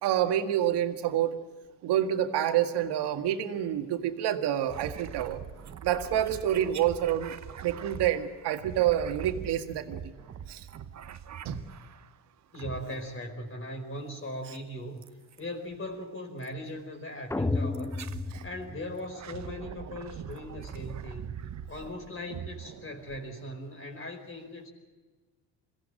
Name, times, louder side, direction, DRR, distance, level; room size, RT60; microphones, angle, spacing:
voice 1, 0.0-1.4 1.8-5.4 5.8-7.3 7.6-10.1 10.5-10.7 11.5-11.6, right 11 dB, 70° right, 6 dB, 1.9 m, -28 dB
sound 1, 4.7-12.1 12.5-13.3 15.0-15.4 16.4-16.6 17.7-18.5 19.0-23.3, right 8 dB, 40° right, 1.1 m, -43 dB
voice 2, 12.5-15.0 15.4-18.0 18.4-24.7, left 1 dB, 30° left, 3 dB, 4.8 m, -39 dB
sound 2, 17.3-19.4, left 3 dB, 5° left, 0.6 m, -32 dB
22.5 x 16.0 x 7.7 m, 1.4 s
supercardioid pair, 75°, 42 cm